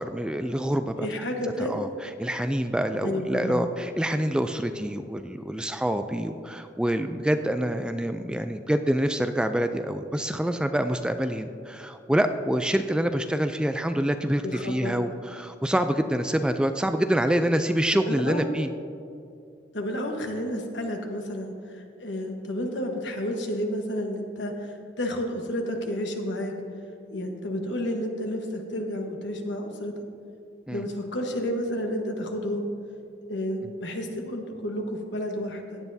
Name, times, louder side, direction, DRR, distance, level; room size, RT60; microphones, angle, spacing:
voice 1, 0.0-1.1 1.4-18.7 30.7-30.8, equal, 5° right, 8 dB, 0.3 m, -26 dB
voice 2, 1.0-1.8 2.9-3.7 14.4-15.0 18.1-18.4 19.7-26.5 27.1-30.0 30.7-32.7 33.3-35.8, equal, 80° left, 3 dB, 1.3 m, -31 dB
16.0 x 10.0 x 2.7 m, 2.5 s
head